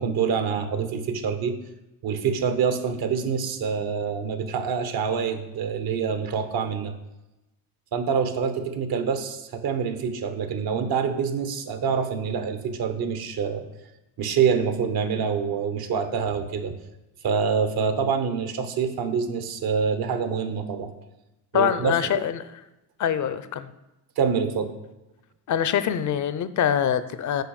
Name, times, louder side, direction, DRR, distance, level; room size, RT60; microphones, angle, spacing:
voice 1, 0.0-1.6 2.0-6.9 7.9-13.7 14.2-16.8 17.2-20.9 21.5-22.2 24.2-24.7, right 6 dB, 60° right, 9 dB, 1.1 m, -26 dB
voice 2, 21.5-22.6 23.0-23.7 25.5-27.4, left 9 dB, 45° left, 13 dB, 0.6 m, -24 dB
6.6 x 4.6 x 6.5 m, 0.95 s
cardioid pair, 90°, 41 cm